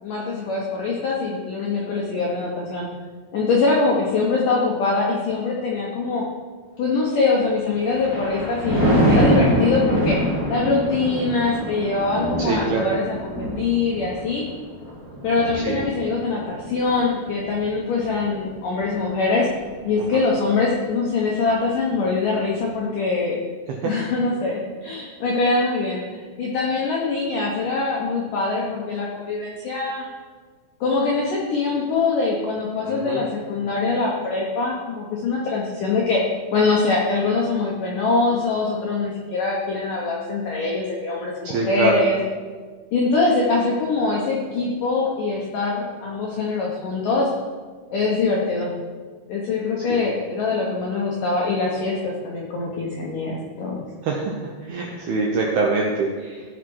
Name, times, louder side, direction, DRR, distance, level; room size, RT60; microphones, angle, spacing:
voice 1, 0.0-2.9 3.3-6.2 6.8-14.4 15.2-19.5 19.8-23.4 23.8-30.1 30.8-36.2 36.5-42.2 42.9-47.3 47.9-48.7 49.3-53.8, left 3 dB, 75° left, -3 dB, 1.9 m, -23 dB
Thunder, 7.5-19.0 19.5-19.8, equal, 30° right, 0.4 m, -25 dB
voice 2, 12.4-12.9 15.5-15.8 20.0-20.2 23.7-24.0 32.9-33.2 41.4-42.0 49.8-50.0 54.0-56.4, right 3 dB, 80° right, -1 dB, 2.2 m, -25 dB
14.5 x 5.9 x 4.7 m, 1.5 s
omnidirectional pair, 5.5 m